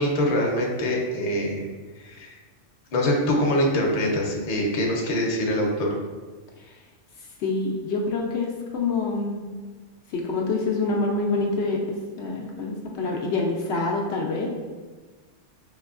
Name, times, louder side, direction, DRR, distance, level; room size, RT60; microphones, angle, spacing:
voice 1, 0.0-1.7 2.0-2.4 2.9-5.9, left 1 dB, 40° left, -1 dB, 0.7 m, -24 dB
voice 2, 7.4-9.5 10.1-11.8 12.2-14.5, left 3 dB, 70° left, -1 dB, 0.8 m, -26 dB
5.2 x 2.9 x 2.4 m, 1.3 s
omnidirectional pair, 1.2 m